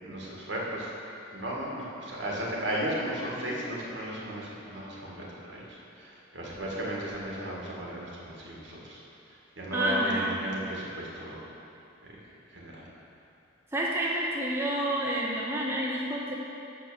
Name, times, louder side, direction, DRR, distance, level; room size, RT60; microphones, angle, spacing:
voice 1, 0.0-0.9 1.3-9.0 9.3-11.4 12.0-12.2 12.5-12.8, right 1 dB, 65° right, -4 dB, 1.7 m, -35 dB
voice 2, 9.7-10.4 13.7-16.3, right 1 dB, 15° right, -4 dB, 0.7 m, -29 dB
6.2 x 5.9 x 7.0 m, 2.7 s
head